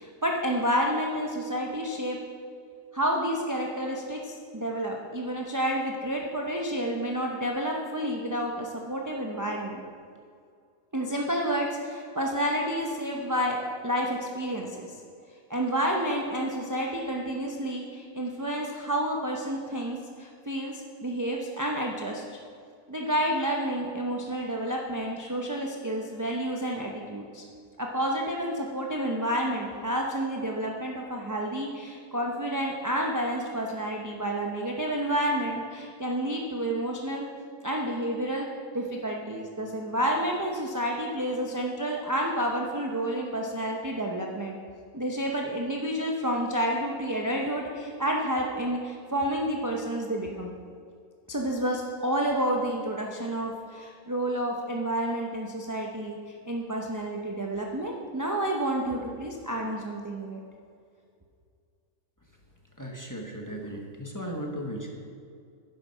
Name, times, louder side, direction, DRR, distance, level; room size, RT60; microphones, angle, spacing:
voice 1, 0.0-2.2 2.9-9.8 10.9-13.6 13.8-14.9 15.5-22.2 22.9-27.4 27.8-37.3 37.6-38.5 38.7-44.6 44.9-50.5 51.3-60.4, right 1 dB, 20° right, -1 dB, 0.6 m, -30 dB
voice 2, 62.8-64.9, equal, 15° left, 0 dB, 1.1 m, -36 dB
10.5 x 7.5 x 5.6 m, 2.3 s
omnidirectional pair, 1.5 m